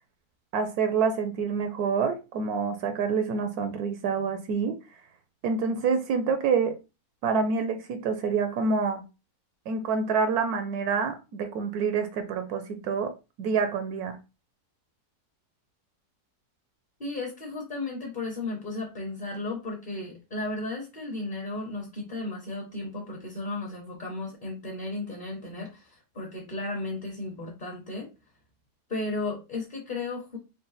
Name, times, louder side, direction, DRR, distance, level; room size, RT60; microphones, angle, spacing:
voice 1, 0.5-4.8 5.4-6.8 7.2-9.0 9.7-13.1 13.4-14.2, right 5 dB, 75° right, 1.0 m, -27 dB
voice 2, 17.0-28.1 28.9-30.4, left 2 dB, 35° left, 0.8 m, -34 dB
3.8 x 2.1 x 3.9 m
omnidirectional pair, 1.7 m